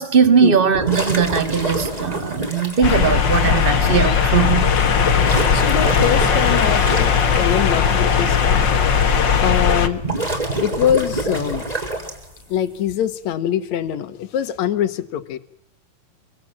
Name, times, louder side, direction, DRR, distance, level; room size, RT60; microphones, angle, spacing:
voice 1, 0.0-4.8, right 6 dB, 30° right, 1.0 m, -19 dB
sound 1, 0.7-2.8 3.9-4.0 5.1-7.4 9.8-12.4, right 2 dB, 10° right, 3.5 m, -26 dB
sound 2, 2.8-9.9, left 6 dB, 40° left, 1.8 m, -17 dB
voice 2, 5.5-8.8 9.4-10.0 10.6-11.6 12.5-15.4, left 10 dB, 60° left, 2.4 m, -23 dB
26.5 x 24.5 x 7.5 m
omnidirectional pair, 4.1 m